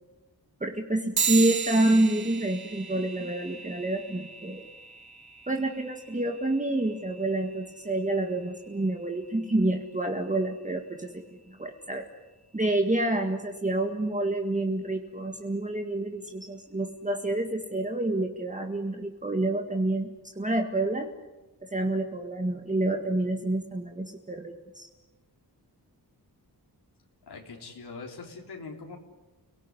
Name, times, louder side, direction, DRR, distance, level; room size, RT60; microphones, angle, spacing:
voice 1, 0.6-4.7 5.5-12.1 12.5-20.1 20.4-21.1 21.6-24.9, right 2 dB, 20° right, 3 dB, 1.9 m, -28 dB
sound 1, 1.2-11.0, right 6 dB, 70° right, 2.4 m, -37 dB
voice 2, 27.3-29.0, left 4 dB, 80° left, 1 dB, 3.8 m, -42 dB
30.0 x 18.0 x 9.9 m, 1.1 s
wide cardioid pair, 110°, 39 cm